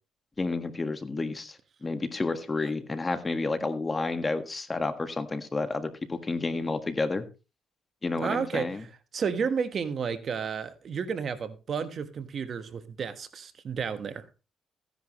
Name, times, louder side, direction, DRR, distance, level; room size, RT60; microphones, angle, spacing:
voice 1, 0.4-7.2 8.0-8.8, left 3 dB, 25° left, 1.7 m, -30 dB
voice 2, 8.2-8.7 9.1-14.2, right 6 dB, 50° right, 1.4 m, -31 dB
15.0 x 10.5 x 3.1 m
cardioid pair, 90°, 0 cm